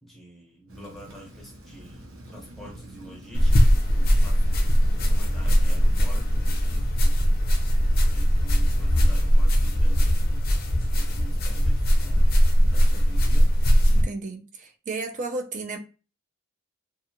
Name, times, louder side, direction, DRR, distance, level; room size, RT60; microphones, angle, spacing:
voice 1, 0.0-4.6 5.0-7.2 8.1-10.5 10.9-13.6, equal, ahead, 0.9 m, -46 dB
Rain, 0.7-6.5, right 1 dB, 70° right, 0.8 m, -46 dB
sound 1, 3.3-14.0, equal, 45° left, 0.5 m, -20 dB
voice 2, 13.9-15.8, right 3 dB, 35° right, 0.4 m, -33 dB
2.5 x 2.3 x 2.8 m
head